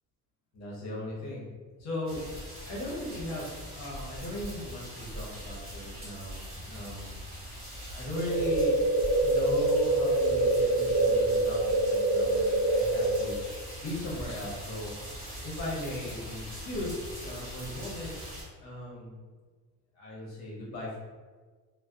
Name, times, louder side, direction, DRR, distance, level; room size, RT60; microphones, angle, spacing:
voice 1, 0.5-1.5 1.8-7.2 7.6-8.8 9.2-13.4 13.8-14.9 15.4-18.1 18.6-19.2 20.0-21.0, left 1 dB, 40° left, -5 dB, 0.8 m, -38 dB
sound 1, 2.1-18.4, equal, 30° right, 1.0 m, -42 dB
sound 2, 8.1-13.2, right 2 dB, 10° left, 0.4 m, -25 dB
2.6 x 2.1 x 2.3 m, 1.4 s
cardioid pair, 165°, 43 cm